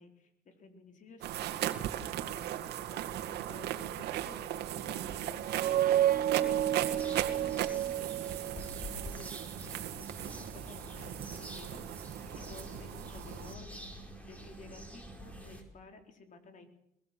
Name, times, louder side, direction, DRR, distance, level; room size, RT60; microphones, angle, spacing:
voice 1, 0.0-5.5 5.9-7.5 7.9-16.7, left 4 dB, 50° left, 5 dB, 4.2 m, -54 dB
sound 1, 1.2-13.5, right 12 dB, 80° right, 2.1 m, -38 dB
sound 2, 5.3-8.9, right 11 dB, 55° right, 1.7 m, -30 dB
sound 3, 6.9-15.6, right 1 dB, 10° left, 5.1 m, -47 dB
22.0 x 22.0 x 7.8 m, 0.78 s
cardioid pair, 110°, 17 cm